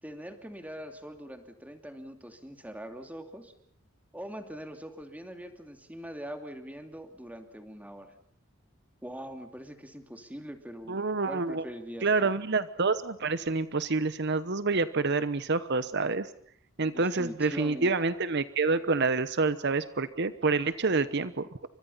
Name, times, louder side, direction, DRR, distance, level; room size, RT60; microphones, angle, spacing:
voice 1, 0.0-3.5 4.1-8.1 9.0-11.0 11.3-12.3 16.8-17.9, equal, 10° right, 6 dB, 2.7 m, -42 dB
voice 2, 10.9-11.6 12.0-16.3 16.8-21.5, right 3 dB, 55° right, 13 dB, 1.0 m, -27 dB
30.0 x 25.5 x 5.7 m, 0.62 s
head